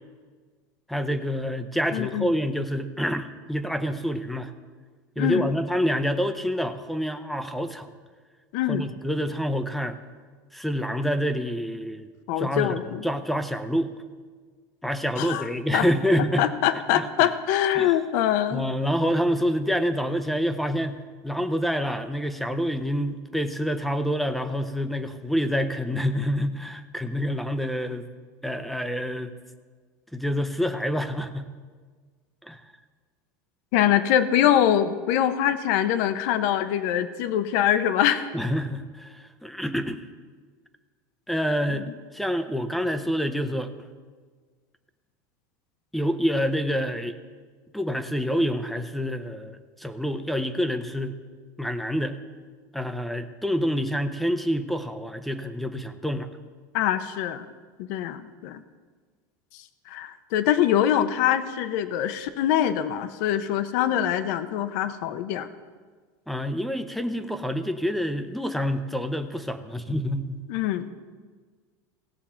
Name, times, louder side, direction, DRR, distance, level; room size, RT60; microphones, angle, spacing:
voice 1, 0.9-4.5 5.2-7.9 8.7-10.0 10.5-12.1 12.4-13.9 14.8-16.5 16.9-17.3 17.8-17.9 18.5-21.0 21.2-28.1 28.4-29.3 30.1-31.5 32.4-32.6 38.3-40.0 41.3-41.9 42.1-43.7 45.9-47.2 47.7-51.2 51.6-52.2 52.7-56.3 66.3-70.4, equal, ahead, 10 dB, 0.6 m, -27 dB
voice 2, 1.9-2.3 5.2-5.5 8.5-8.8 12.3-13.0 15.2-15.5 15.7-15.9 16.4-18.7 33.7-38.2 41.8-41.9 56.7-57.4 57.8-58.6 59.9-65.5 70.5-70.9, left 11 dB, 65° left, 12 dB, 0.7 m, -24 dB
17.5 x 7.1 x 4.4 m, 1.5 s
supercardioid pair, 145°, 10 cm